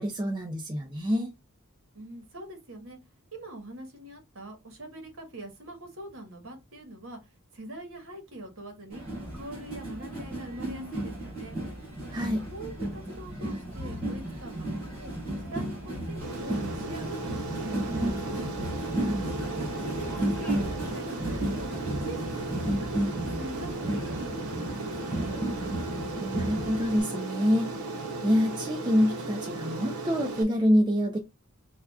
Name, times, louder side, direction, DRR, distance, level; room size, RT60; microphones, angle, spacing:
voice 1, 0.0-1.3 12.1-12.5 18.9-19.3 26.2-27.7 28.2-31.2, equal, 20° right, 0.5 m, -26 dB
voice 2, 1.9-3.0 3.3-9.0 9.3-11.6 12.2-15.1 15.4-18.4 19.1-21.7 22.0-22.9 23.2-25.4, right 1 dB, 65° right, 1.3 m, -44 dB
sound 1, 8.9-27.0, right 1 dB, 40° right, 2.6 m, -33 dB
Aircraft, 16.2-30.4, right 2 dB, 85° right, 0.7 m, -36 dB
5.6 x 2.3 x 2.3 m
head